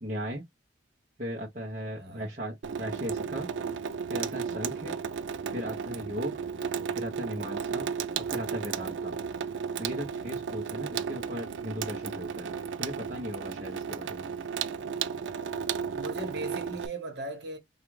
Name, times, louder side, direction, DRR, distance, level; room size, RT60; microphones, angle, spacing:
voice 1, 0.0-0.5 1.2-3.5 4.1-5.0 5.5-6.4 6.9-9.2 9.8-14.3, equal, 40° right, 0.8 m, -37 dB
voice 2, 2.0-2.3 4.5-4.7 15.9-17.6, right 2 dB, 55° right, 1.3 m, -39 dB
Water tap faucet / Sink (filling or washing), 2.6-16.9, right 6 dB, 75° right, 0.4 m, -34 dB
4.7 x 2.4 x 3.1 m
head